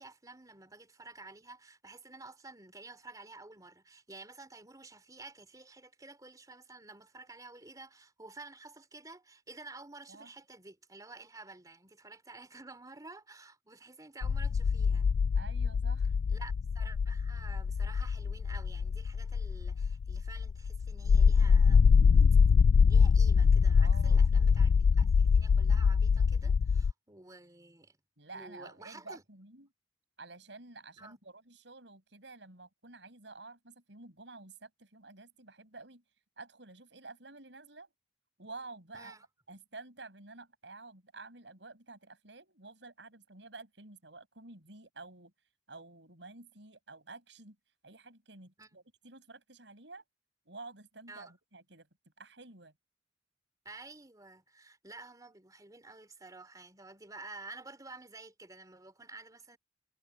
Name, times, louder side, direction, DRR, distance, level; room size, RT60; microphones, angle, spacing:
voice 1, 0.0-15.1 16.3-21.8 22.9-28.0 28.3-29.2 31.0-31.2 38.9-39.2 48.6-48.8 51.1-51.3 53.6-59.6, right 3 dB, 20° right, 3.4 m, -51 dB
sound 1, 14.2-26.9, left 5 dB, 85° left, 0.3 m, -24 dB
voice 2, 15.4-16.1 23.8-24.3 28.2-29.7 30.2-36.0 36.4-37.9 38.4-39.1 39.5-45.3 45.7-47.6 47.8-50.0 50.5-51.9 52.2-52.7, right 3 dB, 85° right, 6.0 m, -50 dB
head